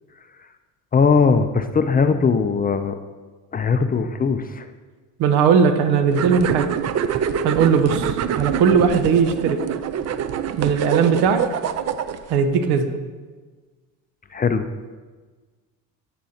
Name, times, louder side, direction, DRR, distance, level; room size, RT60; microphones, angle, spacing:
voice 1, 0.9-3.0 3.5-4.7 14.3-14.6, left 5 dB, 25° left, 9 dB, 0.4 m, -19 dB
voice 2, 5.2-6.7 7.4-9.6 10.6-11.4 12.3-12.9, right 6 dB, 80° right, 9 dB, 0.9 m, -18 dB
sound 1, 6.1-12.4, right 8 dB, 40° right, 0.5 m, -26 dB
10.0 x 8.9 x 2.8 m, 1.4 s
supercardioid pair, 100°, 39 cm